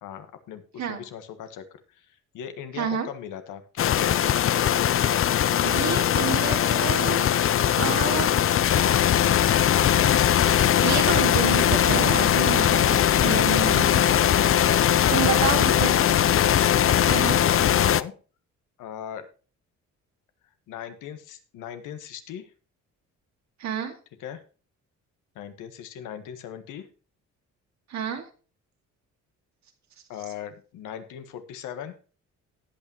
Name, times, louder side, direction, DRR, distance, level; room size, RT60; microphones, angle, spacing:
voice 1, 0.0-4.3 14.8-16.1 17.2-18.1 18.8-19.3 20.7-22.5 24.2-24.4 25.3-26.9 30.1-31.9, left 9 dB, 90° left, 9 dB, 1.5 m, -39 dB
voice 2, 2.7-3.1 5.6-7.5 7.8-8.3 10.8-14.1 15.1-16.0 17.0-17.4 23.6-23.9 27.9-28.3, right 8 dB, 65° right, 5 dB, 2.2 m, -29 dB
sound 1, 3.8-18.0, left 10 dB, 45° left, 0.5 m, -20 dB
18.0 x 6.2 x 3.0 m, 0.37 s
cardioid pair, 90°, 30 cm